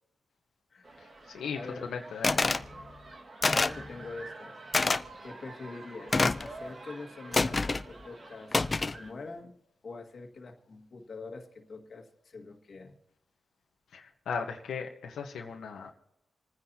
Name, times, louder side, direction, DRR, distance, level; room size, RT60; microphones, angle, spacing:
voice 1, 0.7-1.0 1.5-2.0 3.5-4.6 4.9-9.5 9.8-13.0, left 3 dB, 50° left, 3 dB, 1.9 m, -44 dB
sound 1, 0.8-9.1, right 2 dB, 45° right, 1.9 m, -48 dB
voice 2, 1.9-2.6 13.9-15.9, left 6 dB, 90° left, 2 dB, 1.2 m, -37 dB
sound 2, 2.2-2.7 3.4-3.8 4.7-5.0 6.1-6.5 7.3-7.8 8.5-9.0, left 3 dB, 30° left, 0.6 m, -26 dB
28.0 x 9.7 x 2.9 m, 0.84 s
cardioid pair, 85°, 0 cm